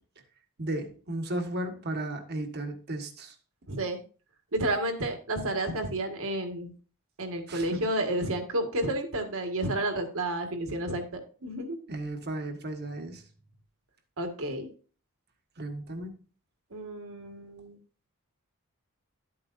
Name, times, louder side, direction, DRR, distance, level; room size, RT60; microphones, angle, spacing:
voice 1, 0.6-3.3 7.5-7.9 11.9-13.2 15.6-16.1, right 1 dB, 50° right, 5 dB, 1.5 m, -34 dB
voice 2, 3.7-4.0 4.5-6.7 7.2-11.8 14.2-14.7 16.7-17.8, right 1 dB, 65° right, 5 dB, 1.8 m, -31 dB
12.5 x 8.6 x 2.6 m, 0.39 s
head